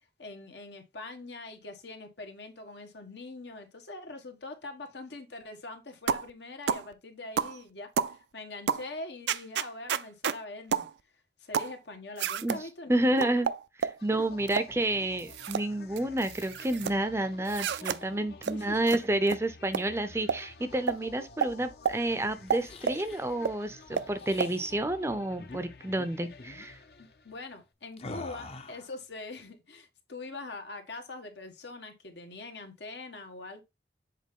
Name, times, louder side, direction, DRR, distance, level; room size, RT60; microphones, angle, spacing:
voice 1, 0.2-10.9 11.4-13.4 14.1-14.2 18.5-18.8 27.0-33.6, left 2 dB, 85° left, 1.4 m, -43 dB
sound 1, 6.1-6.3 6.7-6.9 7.4-7.6 8.0-8.2 8.7-8.9 9.3-10.4 10.7-10.9 11.5-11.7 12.2-12.6 13.2-14.0 14.5-14.7 15.2-15.7 16.0-16.9 17.5-18.0 18.4-18.5 18.9-19.0 19.3-19.4 19.7-19.8 20.3-20.4 20.9-21.0 21.4-21.5 21.9-22.0 22.5-23.0 23.4-23.5 24.0-24.1 24.4-24.5, right 7 dB, 80° right, 0.4 m, -30 dB
voice 2, 12.9-13.5 13.8-26.8, right 1 dB, 15° right, 0.5 m, -30 dB
sound 2, 14.0-27.6, left 3 dB, 65° left, 0.8 m, -51 dB
sound 3, 22.4-23.2 24.1-24.7 25.4-25.6 25.9-26.1 26.4-26.7 28.0-28.9, left 3 dB, 35° left, 0.6 m, -45 dB
7.5 x 3.9 x 3.6 m
head